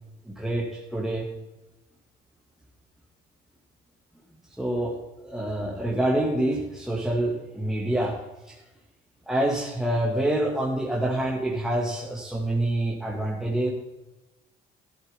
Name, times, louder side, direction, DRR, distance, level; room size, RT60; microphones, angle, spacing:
voice 1, 0.3-1.3 4.6-4.9 5.2-8.2 8.5-8.6 9.3-13.7, right 1 dB, ahead, -4 dB, 2.4 m, -26 dB
13.0 x 11.5 x 3.8 m, 1.0 s
supercardioid pair, 65°, 21 cm